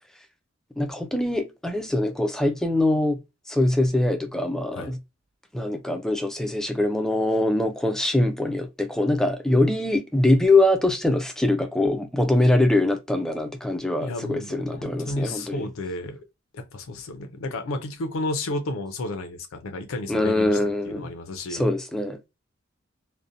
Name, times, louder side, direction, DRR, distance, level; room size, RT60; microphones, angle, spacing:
voice 1, 0.8-3.2 3.5-5.0 5.5-15.7 20.1-21.1 21.5-22.2, left 1 dB, 5° left, 0.3 m, -23 dB
voice 2, 14.0-16.2 16.5-20.6 20.9-21.7, left 2 dB, 85° left, 0.5 m, -32 dB
2.5 x 2.0 x 2.6 m
head